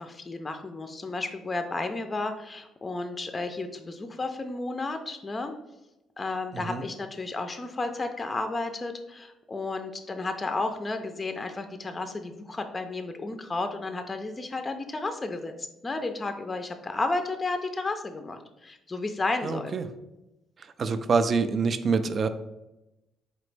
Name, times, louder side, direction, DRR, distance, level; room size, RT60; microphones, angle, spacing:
voice 1, 0.0-5.5 6.2-19.7, left 3 dB, 25° left, 6 dB, 0.4 m, -32 dB
voice 2, 19.4-19.9 20.8-22.3, right 5 dB, 45° right, 10 dB, 0.3 m, -26 dB
4.2 x 2.9 x 3.2 m, 0.95 s
cardioid pair, 85°, 0 cm